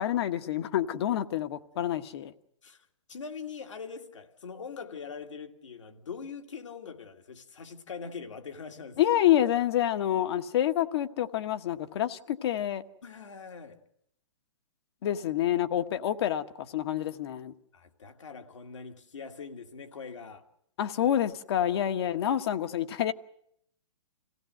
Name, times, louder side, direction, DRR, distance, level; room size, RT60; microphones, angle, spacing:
voice 1, 0.0-2.3 9.0-12.8 15.0-17.5 20.8-23.1, left 11 dB, 55° left, 1.3 m, -27 dB
voice 2, 2.6-9.0 13.0-13.8 17.7-20.4, left 5 dB, 75° left, 2.2 m, -42 dB
26.5 x 16.5 x 7.8 m
hypercardioid pair, 130°, 16 cm